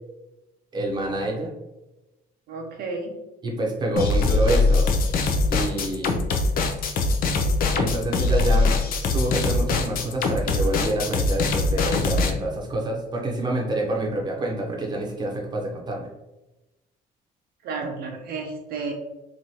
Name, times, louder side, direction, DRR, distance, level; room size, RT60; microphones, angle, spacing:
voice 1, 0.7-1.5 3.4-4.9 5.5-6.4 7.7-8.8 9.1-16.1, right 1 dB, 25° right, -1 dB, 0.8 m, -27 dB
voice 2, 2.5-3.2 17.6-18.9, right 4 dB, 65° right, 1 dB, 0.5 m, -32 dB
sound 1, 4.0-12.3, left 3 dB, 60° left, 0.5 m, -22 dB
3.0 x 2.5 x 2.8 m, 1.0 s
cardioid pair, 110°, 17 cm